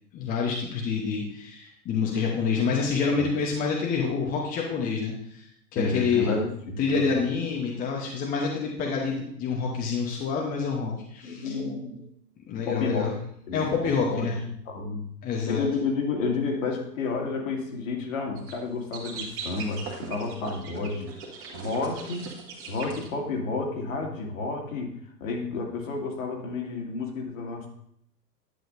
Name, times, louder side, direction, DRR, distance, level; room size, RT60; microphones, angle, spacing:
voice 1, 0.1-5.5 5.7-6.4 6.8-11.5 12.5-13.1 13.5-14.4 15.2-15.6, left 5 dB, 15° left, -1 dB, 1.0 m, -27 dB
voice 2, 5.7-7.2 11.2-12.0 12.7-13.1 13.5-13.7 14.1-14.3 14.7-15.1 15.5-21.1 21.5-22.3 22.7-24.9 25.2-27.7, left 3 dB, 50° left, 1 dB, 2.2 m, -30 dB
sound 1, 18.4-18.5 18.9-23.1, right 4 dB, 25° right, 2.1 m, -39 dB
10.5 x 7.6 x 2.6 m, 0.71 s
figure-of-eight pair, 115°, 49 cm